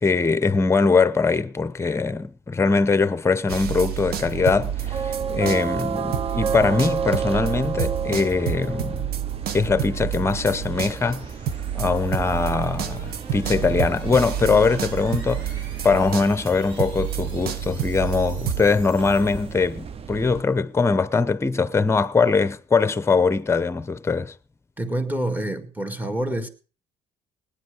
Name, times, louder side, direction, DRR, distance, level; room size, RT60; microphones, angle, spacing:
voice 1, 0.0-9.1 9.5-11.3 11.7-15.5 15.8-24.3, left 4 dB, 15° left, 0.8 m, -22 dB
sound 1, 3.5-5.9 6.1-18.6, right 9 dB, 70° right, 1.3 m, -29 dB
sound 2, 3.7-20.4, right 6 dB, 35° right, 0.7 m, -33 dB
sound 3, 7.1-20.1, right 3 dB, 85° right, 4.7 m, -48 dB
voice 2, 24.8-26.5, right 1 dB, 10° right, 2.0 m, -27 dB
18.5 x 10.0 x 5.0 m
cardioid pair, 110°, 17 cm